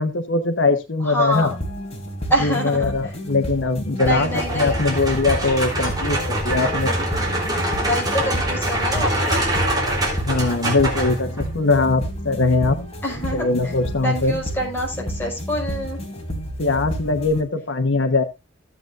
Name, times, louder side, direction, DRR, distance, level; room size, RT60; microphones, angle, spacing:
voice 1, 0.0-1.5 2.4-4.3 4.5-6.9 10.1-12.8 13.3-14.4 16.6-18.2, left 3 dB, 80° left, 7 dB, 1.2 m, -21 dB
voice 2, 1.1-1.5 2.3-2.9 4.0-4.8 7.8-9.4 13.0-13.5 14.0-16.0, equal, 10° left, -2 dB, 5.3 m, -25 dB
sound 1, 1.3-17.4, equal, 35° left, 3.1 m, -31 dB
sound 2, 4.0-11.6, right 1 dB, 20° right, 3.4 m, -24 dB
15.5 x 8.1 x 2.5 m, 0.23 s
head